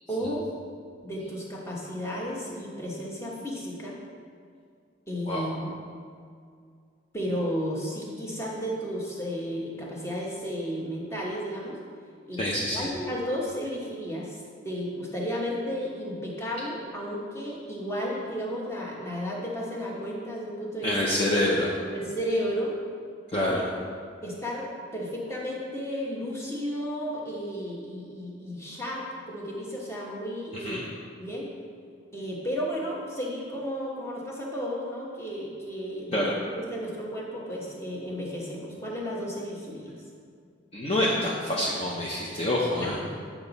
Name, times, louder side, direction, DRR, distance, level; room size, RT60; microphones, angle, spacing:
voice 1, 0.1-0.5 1.0-4.0 5.1-5.7 7.1-11.8 12.3-12.4 12.7-14.4 14.6-20.9 21.9-22.7 23.5-23.6 24.2-30.9 31.2-31.4 32.1-36.3 36.7-40.0 42.8-42.9, equal, 15° left, -3 dB, 1.2 m, -33 dB
voice 2, 12.4-12.9 20.8-21.7 23.3-23.6 30.6-30.8 36.1-36.3 40.7-43.0, left 1 dB, 30° left, -4 dB, 0.7 m, -26 dB
8.6 x 5.9 x 4.0 m, 2.2 s
head